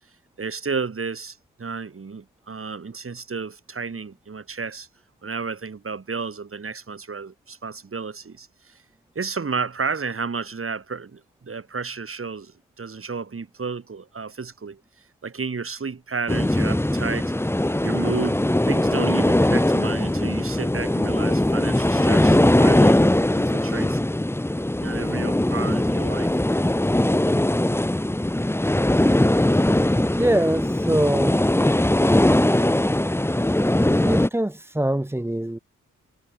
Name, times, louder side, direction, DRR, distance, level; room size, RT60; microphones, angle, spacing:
voice 1, 0.4-4.9 5.2-8.8 9.2-14.8 15.2-17.3 17.8-23.0 23.3-24.0 24.8-26.3, right 5 dB, 45° right, 7.5 m, -32 dB
sound 1, 16.3-34.3, left 1 dB, 5° left, 2.4 m, -20 dB
voice 2, 29.9-31.4 33.8-35.6, right 1 dB, 10° right, 1.4 m, -24 dB
wide cardioid pair, 120°, 32 cm